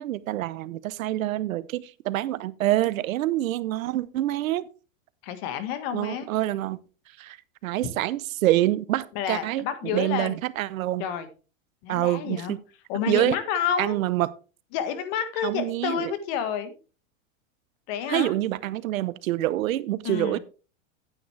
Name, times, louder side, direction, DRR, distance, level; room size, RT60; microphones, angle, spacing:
voice 1, 0.0-4.7 5.9-6.8 7.2-7.4 7.6-9.6 9.9-11.0 11.9-12.6 13.1-13.4 13.8-14.3 15.4-16.1 18.1-20.4, right 15 dB, 80° right, 0.9 m, -26 dB
voice 2, 5.2-6.3 9.1-10.4 11.0-11.3 11.8-12.5 12.9-14.0 14.7-16.8 17.9-18.3 20.0-20.4, left 8 dB, 45° left, 1.7 m, -29 dB
9.7 x 9.2 x 3.3 m
supercardioid pair, 150°, 40 cm